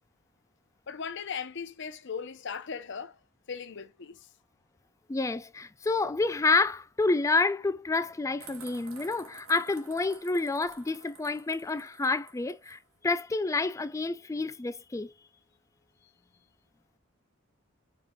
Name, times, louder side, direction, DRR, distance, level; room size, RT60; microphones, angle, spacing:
voice 1, 0.9-3.2 3.5-4.3, left 6 dB, 60° left, 0.7 m, -38 dB
voice 2, 5.1-12.8 13.0-15.1, left 3 dB, 15° left, 0.3 m, -28 dB
sound 1, 8.4-12.8, right 5 dB, 80° right, 1.5 m, -51 dB
5.0 x 3.7 x 2.3 m
head